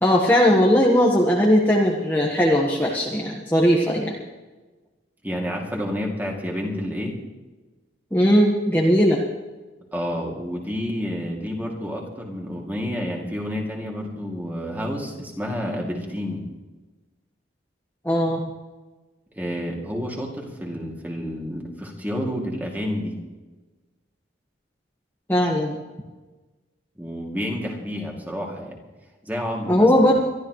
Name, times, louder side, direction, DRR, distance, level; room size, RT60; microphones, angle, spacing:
voice 1, 0.0-4.2 8.1-9.2 18.0-18.4 25.3-25.8 29.7-30.1, equal, 10° left, -3 dB, 1.4 m, -18 dB
voice 2, 5.2-7.1 9.9-16.4 19.4-23.1 27.0-28.8 29.2-30.1, equal, 10° right, -1 dB, 2.6 m, -29 dB
23.5 x 13.0 x 3.2 m, 1.2 s
head